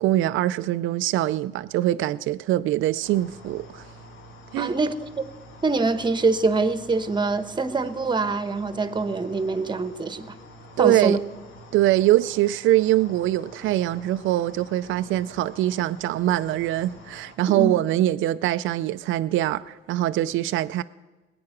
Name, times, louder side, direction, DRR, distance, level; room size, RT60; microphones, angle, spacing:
voice 1, 0.0-3.8 4.5-4.7 10.8-11.2 11.7-20.8, right 14 dB, 80° right, 0.4 m, -23 dB
sound 1, 3.0-17.4, left 1 dB, 80° left, 1.6 m, -47 dB
voice 2, 4.6-5.1 5.6-10.3 10.8-11.2 17.5-17.7, right 3 dB, 20° right, 1.1 m, -24 dB
19.5 x 8.7 x 5.9 m
cardioid pair, 90°, 20 cm